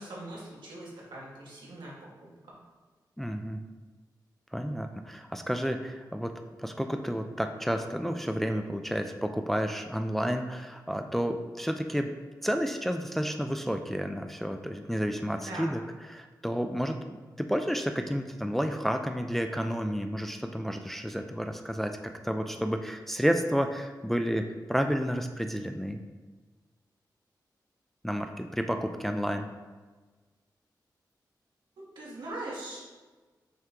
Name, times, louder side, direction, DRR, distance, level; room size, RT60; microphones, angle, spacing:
voice 1, 0.0-2.3 15.4-15.7 31.8-32.8, right 1 dB, 85° right, -5 dB, 1.2 m, -41 dB
voice 2, 3.2-3.6 4.5-6.3 6.6-12.1 12.4-15.8 16.1-22.0 22.2-26.0 28.0-29.5, equal, 5° left, 6 dB, 0.3 m, -31 dB
5.7 x 2.2 x 3.7 m, 1.3 s
cardioid pair, 55°, 8 cm